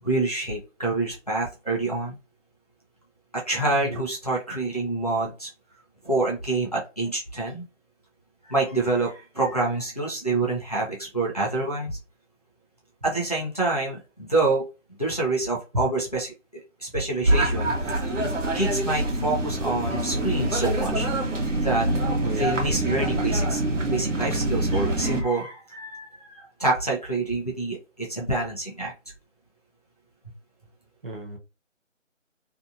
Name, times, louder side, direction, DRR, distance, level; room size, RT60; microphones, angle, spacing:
voice 1, 0.0-2.2 3.3-5.5 6.0-7.6 8.5-12.0 13.0-14.6 15.0-16.3 16.8-18.0 18.5-21.1 21.6-21.9 22.4-23.6 23.9-28.9, right 2 dB, 30° left, -3 dB, 0.5 m, -27 dB
voice 2, 3.7-4.0 22.2-22.5 31.0-31.4, right 4 dB, 45° right, 1 dB, 0.6 m, -34 dB
sound 1, 17.3-25.2, right 1 dB, 70° right, 0.9 m, -25 dB
2.6 x 2.0 x 2.5 m, 0.30 s
figure-of-eight pair, 165°, 38 cm